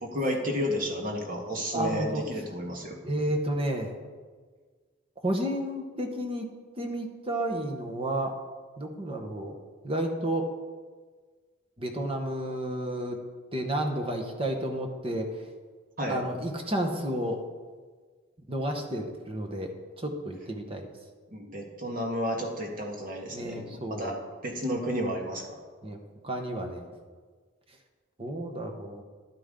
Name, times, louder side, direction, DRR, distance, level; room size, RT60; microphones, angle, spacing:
voice 1, 0.0-3.0 16.0-16.2 21.3-24.1 24.4-25.6, equal, 45° right, 1 dB, 1.6 m, -32 dB
voice 2, 1.7-2.2 3.0-3.9 5.2-6.5 6.8-8.3 8.8-9.5 9.8-10.5 11.8-13.2 13.5-15.5 16.1-17.4 18.5-20.9 23.3-24.2 25.8-26.0 26.2-26.9 28.2-29.0, right 1 dB, 30° right, 3 dB, 1.1 m, -31 dB
11.5 x 9.3 x 3.8 m, 1.5 s
head